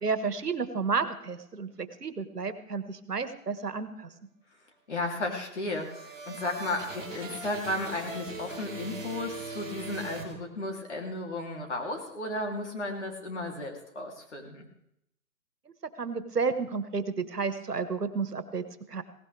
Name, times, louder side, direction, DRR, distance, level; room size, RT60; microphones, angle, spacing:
voice 1, 0.0-4.1 16.0-19.0, right 5 dB, 80° right, 10 dB, 1.8 m, -31 dB
voice 2, 4.9-14.7, left 2 dB, 45° left, 2 dB, 3.3 m, -34 dB
sound 1, 5.3-10.9, right 4 dB, 5° right, 1.7 m, -41 dB
17.5 x 17.0 x 3.5 m, 0.77 s
hypercardioid pair, 175°, 46 cm